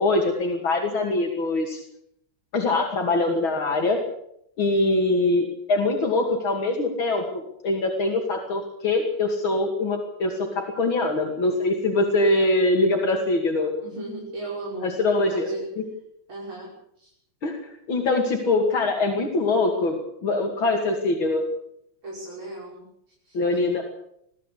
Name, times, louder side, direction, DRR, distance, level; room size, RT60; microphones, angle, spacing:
voice 1, 0.0-1.8 2.5-4.0 4.6-13.7 14.8-15.5 17.4-21.4 23.3-23.8, left 2 dB, 75° left, 2 dB, 3.3 m, -23 dB
voice 2, 13.8-14.9 15.3-15.7 16.3-16.7 17.0-17.1 22.0-23.4, right 2 dB, 85° right, -4 dB, 6.9 m, -36 dB
23.0 x 15.0 x 8.4 m, 0.75 s
omnidirectional pair, 2.2 m